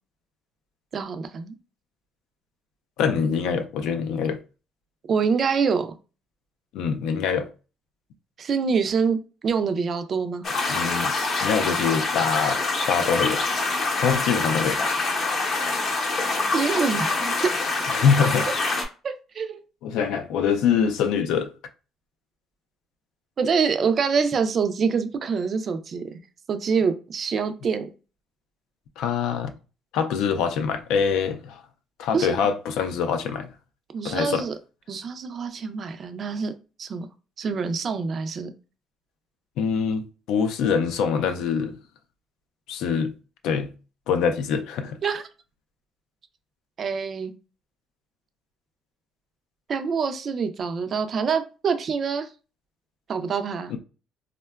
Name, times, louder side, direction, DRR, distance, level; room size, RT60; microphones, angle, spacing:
voice 1, 0.9-1.5 5.1-5.9 8.4-9.2 9.4-10.5 16.5-17.5 19.0-19.6 23.4-26.0 26.5-27.9 32.1-32.4 33.9-34.5 34.9-36.5 36.8-37.1 37.4-38.5 45.0-45.2 46.8-47.3 49.7-52.3 53.1-53.7, right 5 dB, 35° right, 0.3 m, -25 dB
voice 2, 3.0-4.4 6.7-7.5 10.7-12.6 12.9-13.4 14.0-14.8 17.9-18.5 19.8-21.5 29.0-29.5 29.9-31.6 32.0-33.5 34.0-34.5 39.6-41.8 42.7-43.1 43.4-43.7 44.1-45.0, left 6 dB, 75° left, 0.4 m, -24 dB
sound 1, 10.4-18.8, left 3 dB, 40° left, 0.7 m, -25 dB
3.6 x 2.1 x 2.2 m
cardioid pair, 160°, 0 cm